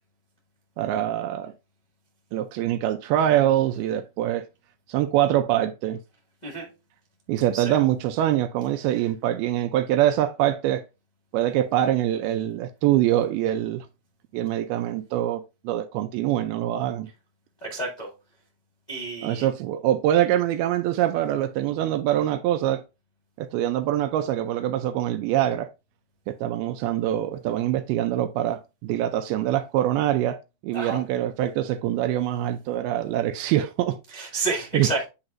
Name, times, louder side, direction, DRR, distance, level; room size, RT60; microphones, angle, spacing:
voice 1, 0.8-1.5 2.3-4.4 4.9-6.0 7.3-10.9 11.3-13.9 14.3-17.1 19.2-22.8 23.4-25.7 26.3-30.4 30.6-34.0 34.4-34.5 34.7-34.9, right 12 dB, 80° right, 2.3 m, -24 dB
voice 2, 17.6-18.1 18.9-19.5 30.7-31.0 34.1-35.1, right 3 dB, 40° left, 0.6 m, -30 dB
9.7 x 4.0 x 2.5 m
omnidirectional pair, 4.7 m